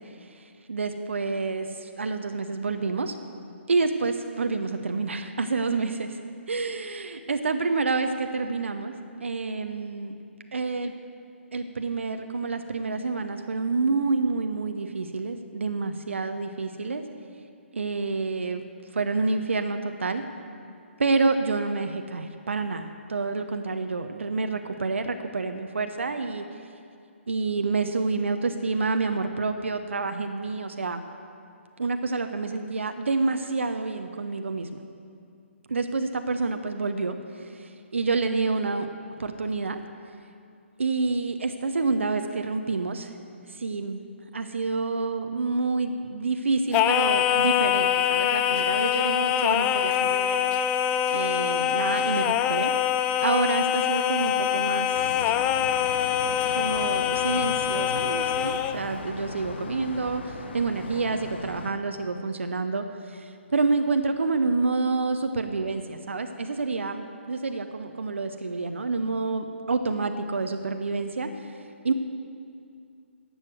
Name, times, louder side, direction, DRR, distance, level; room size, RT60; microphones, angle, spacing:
voice 1, 0.2-3.1 3.7-6.2 6.5-8.9 9.2-10.1 10.5-10.9 11.5-17.0 17.7-18.6 18.9-20.2 21.0-26.4 27.3-31.0 31.8-34.8 35.7-38.9 39.2-39.8 40.8-43.1 43.5-44.0 44.3-50.5 51.1-52.7 53.2-55.2 56.5-71.6 71.8-71.9, right 3 dB, 70° right, 7 dB, 0.8 m, -28 dB
Singing, 46.7-58.8, left 10 dB, 15° left, 0.3 m, -24 dB
sound 1, 54.9-61.7, left 3 dB, 55° left, 1.1 m, -38 dB
12.0 x 8.1 x 7.8 m, 2.4 s
figure-of-eight pair, 140°, 7 cm